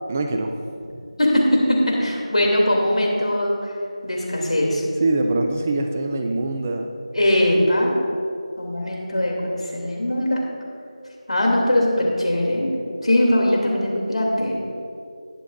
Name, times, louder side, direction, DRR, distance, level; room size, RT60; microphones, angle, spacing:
voice 1, 0.1-0.5 5.0-6.9, right 2 dB, 20° right, 4 dB, 0.4 m, -23 dB
voice 2, 1.2-3.7 4.0-4.8 7.1-7.9 8.6-10.4 11.3-12.7 13.0-14.6, left 1 dB, 75° left, -1 dB, 2.7 m, -20 dB
20.5 x 7.1 x 2.6 m, 2.5 s
figure-of-eight pair, 170°, 4 cm